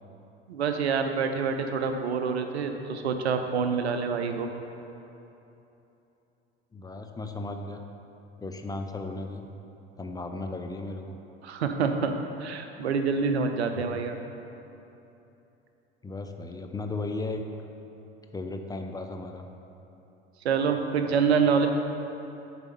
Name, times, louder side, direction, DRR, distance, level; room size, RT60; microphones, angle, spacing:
voice 1, 0.5-4.5 11.4-12.1 12.4-14.2 20.4-21.7, right 5 dB, 85° right, 6 dB, 0.6 m, -26 dB
voice 2, 6.7-7.8 8.4-9.5 10.0-11.2 13.7-14.0 16.0-17.4 18.3-19.5, left 2 dB, 10° left, 4 dB, 0.4 m, -35 dB
6.9 x 4.2 x 5.5 m, 2.9 s
hypercardioid pair, 70°, 32 cm